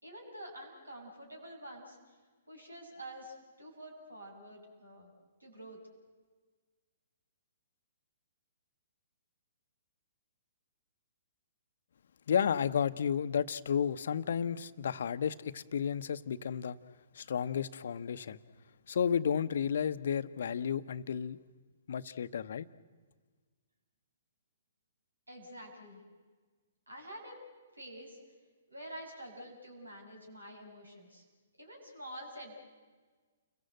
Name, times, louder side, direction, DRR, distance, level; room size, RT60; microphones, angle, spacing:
voice 1, 0.0-2.1 2.5-5.1 5.4-5.8 25.3-26.0 26.9-27.4 27.7-28.2 28.7-31.2 31.6-32.6, right 1 dB, 85° right, 6.5 m, -48 dB
voice 2, 12.3-16.8 17.1-18.4 18.9-21.4 21.9-22.7, left 7 dB, 55° left, 0.9 m, -32 dB
29.5 x 22.0 x 7.9 m
figure-of-eight pair, 120°, 0 cm